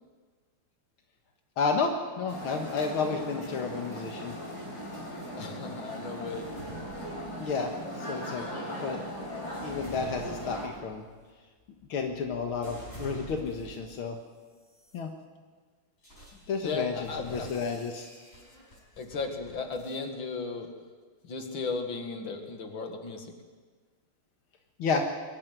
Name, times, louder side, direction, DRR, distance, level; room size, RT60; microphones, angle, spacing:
voice 1, 1.6-4.3 7.4-9.0 9.6-11.0 11.9-14.2 14.9-15.1 16.5-18.1 24.8-25.1, left 5 dB, 90° left, 3 dB, 2.3 m, -31 dB
sound 1, 2.3-10.6, equal, 50° left, 5.0 m, -38 dB
voice 2, 5.3-6.5 16.3-17.6 18.7-20.7 21.2-23.4, left 4 dB, 70° left, 4 dB, 2.8 m, -36 dB
sound 2, 6.3-7.8 8.5-14.0 14.6-15.0 16.0-20.1, equal, 30° left, 5.6 m, -48 dB
22.5 x 13.0 x 9.3 m, 1.5 s
omnidirectional pair, 2.2 m